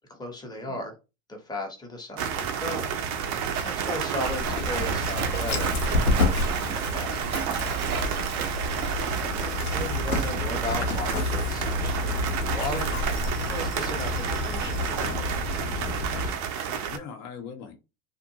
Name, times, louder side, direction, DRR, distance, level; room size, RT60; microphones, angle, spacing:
voice 1, 0.1-0.9 1.3-3.2 3.5-6.1 6.4-7.4 9.6-12.9 13.5-15.2, left 1 dB, 10° left, 0.9 m, -36 dB
sound 1, 2.2-17.0, right 7 dB, 40° right, 0.6 m, -31 dB
Splash splatter, 2.6-10.4, right 5 dB, 90° right, 0.7 m, -36 dB
Dog, 4.2-16.3, left 2 dB, 85° left, 1.0 m, -30 dB
voice 2, 9.1-9.7 10.1-10.6 16.9-17.8, left 6 dB, 40° left, 0.8 m, -42 dB
2.5 x 2.2 x 2.8 m
hypercardioid pair, 85°, 42 cm